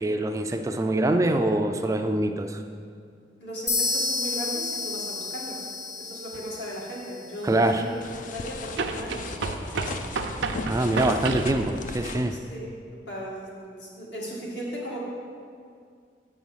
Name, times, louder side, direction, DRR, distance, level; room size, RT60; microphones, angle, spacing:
voice 1, 0.0-2.6 7.4-7.8 10.7-12.4, right 1 dB, 20° right, 6 dB, 0.3 m, -24 dB
voice 2, 3.4-5.6 6.0-7.9 8.3-9.3 12.3-12.7 13.1-15.0, equal, 70° left, -4 dB, 2.1 m, -36 dB
sound 1, 3.7-7.4, left 3 dB, 15° left, 0.7 m, -31 dB
sound 2, 6.3-6.4 8.7-11.6, right 3 dB, 90° right, 0.6 m, -31 dB
sound 3, 8.0-12.3, left 3 dB, 45° left, 0.4 m, -37 dB
7.5 x 6.0 x 5.6 m, 2.3 s
head